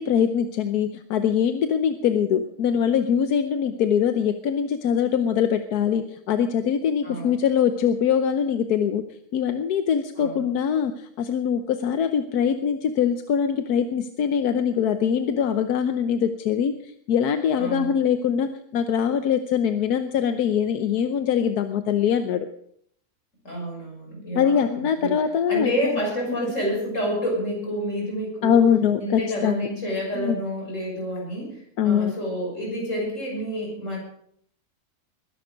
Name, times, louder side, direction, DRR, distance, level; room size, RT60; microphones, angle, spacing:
voice 1, 0.0-9.0 9.3-22.5 24.3-25.9 26.3-26.4 28.4-29.7 30.1-30.4 31.8-32.1, left 8 dB, 85° left, 9 dB, 1.4 m, -23 dB
voice 2, 7.0-7.3 10.2-10.5 17.6-17.9 23.4-25.1 25.5-28.6 29.0-34.0, equal, 55° left, -1 dB, 6.8 m, -29 dB
20.5 x 11.5 x 5.1 m, 0.66 s
omnidirectional pair, 1.6 m